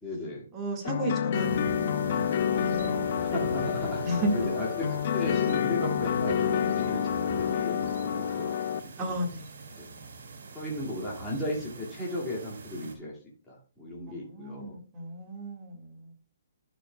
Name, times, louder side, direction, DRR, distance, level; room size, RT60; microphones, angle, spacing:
voice 1, 0.0-0.5 3.2-8.6 9.1-9.2 9.8-9.9 10.5-13.2 13.5-14.8, left 1 dB, 10° left, -6 dB, 2.2 m, -35 dB
voice 2, 0.5-3.3 4.0-4.5 9.0-10.0 14.1-16.1, right 1 dB, 20° right, -1 dB, 1.8 m, -34 dB
sound 1, 0.8-8.8, left 9 dB, 45° left, 0.4 m, -28 dB
sound 2, 1.3-12.9, right 4 dB, 70° right, 2.4 m, -42 dB
11.5 x 6.4 x 2.3 m, 0.38 s
hypercardioid pair, 160°, 0 cm